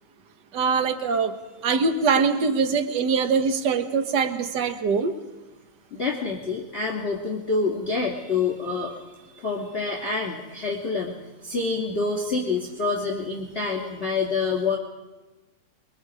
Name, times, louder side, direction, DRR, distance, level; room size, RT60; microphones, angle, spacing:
voice 1, 0.5-1.3 1.6-5.2, right 5 dB, 50° right, 8 dB, 1.4 m, -23 dB
voice 2, 5.9-14.8, left 4 dB, 20° left, -2 dB, 2.9 m, -27 dB
28.5 x 23.0 x 4.9 m, 1.1 s
omnidirectional pair, 3.5 m